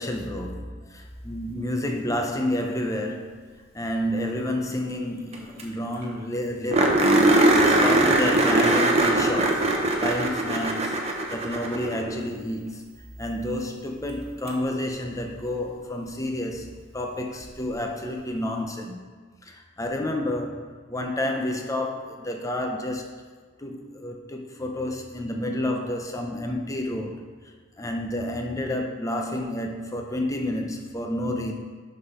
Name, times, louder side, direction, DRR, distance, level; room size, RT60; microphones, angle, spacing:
voice 1, 0.0-3.4 3.7-7.1 7.6-9.7 10.0-11.0 11.3-19.1 19.4-23.2 23.6-27.2 27.8-31.5, left 1 dB, 15° left, 3 dB, 0.7 m, -30 dB
sound 1, 5.3-5.4 5.6-5.7 6.0-6.1 6.7-12.1 14.5-14.6 17.4-17.5, right 2 dB, 35° right, 1.0 m, -21 dB
6.5 x 6.2 x 5.5 m, 1.5 s
head